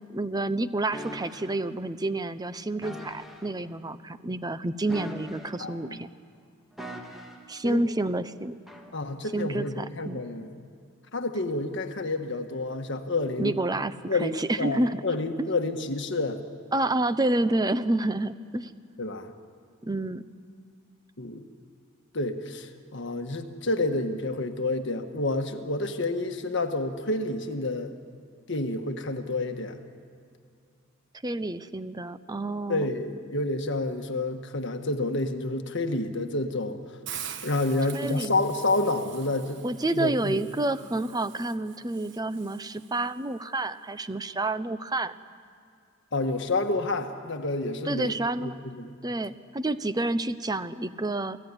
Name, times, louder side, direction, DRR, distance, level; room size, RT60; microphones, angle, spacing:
voice 1, 0.1-6.1 7.5-8.6 9.3-10.2 13.4-15.0 15.4-15.5 16.7-18.7 19.8-20.2 31.2-32.9 37.9-38.3 39.6-45.2 47.8-48.5 49.0-51.4, right 2 dB, 20° right, 13 dB, 0.7 m, -29 dB
sound 1, 0.9-1.6 2.8-3.5 4.9-5.8 6.8-7.5 8.7-8.9, equal, ahead, 2.2 m, -41 dB
voice 2, 5.6-6.0 7.6-7.8 8.9-10.6 11.1-13.5 14.1-16.4 19.0-19.3 21.2-21.4 22.1-27.9 28.5-29.8 32.7-36.8 37.4-39.6 39.9-40.4 46.1-48.1 48.4-49.0, left 2 dB, 60° left, 6 dB, 1.5 m, -29 dB
Hiss, 37.1-43.1, right 9 dB, 60° right, 1.3 m, -44 dB
28.5 x 17.5 x 9.9 m, 2.2 s
head